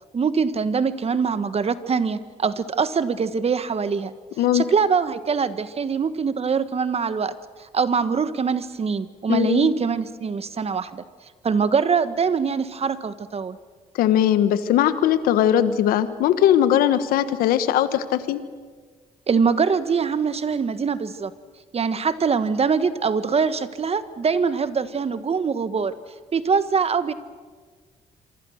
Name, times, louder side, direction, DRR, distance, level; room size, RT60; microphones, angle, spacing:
voice 1, 0.1-4.1 4.5-7.3 7.6-11.0 11.4-13.6 19.3-21.3 21.7-25.9 26.3-27.1, right 5 dB, 45° right, 12 dB, 1.4 m, -23 dB
voice 2, 9.3-9.7 14.0-18.4, left 11 dB, 85° left, 12 dB, 1.3 m, -19 dB
27.0 x 23.5 x 6.5 m, 1.5 s
supercardioid pair, 65°, 15 cm